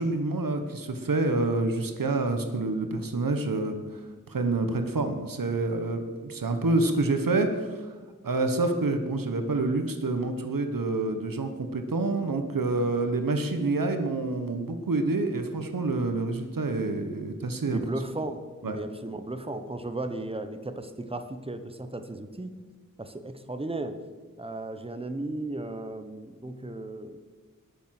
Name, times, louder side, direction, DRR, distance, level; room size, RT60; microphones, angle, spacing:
voice 1, 0.0-4.0 4.3-7.9 8.2-17.8 18.6-18.8, right 2 dB, 85° right, 7 dB, 1.3 m, -27 dB
voice 2, 17.6-22.5 23.0-24.0 24.4-27.2, right 2 dB, 15° right, 8 dB, 1.1 m, -35 dB
19.5 x 7.1 x 6.0 m, 1.4 s
wide cardioid pair, 50°, 33 cm